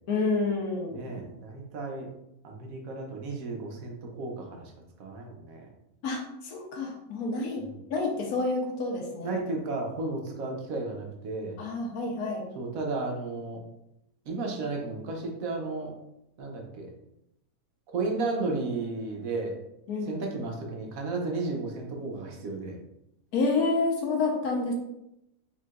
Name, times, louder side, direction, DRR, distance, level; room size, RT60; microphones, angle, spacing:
voice 1, 0.1-1.0 6.0-7.6 7.9-9.4 11.6-12.5 19.9-20.1 23.3-24.7, left 3 dB, 80° left, 1 dB, 1.4 m, -29 dB
voice 2, 0.9-2.1 2.4-4.7 5.0-5.7 7.6-7.7 9.2-11.6 12.5-13.6 14.3-15.9 16.4-16.9 17.9-19.5 20.0-22.8, right 3 dB, 70° right, 1 dB, 1.2 m, -33 dB
4.7 x 3.6 x 2.4 m, 0.83 s
omnidirectional pair, 1.6 m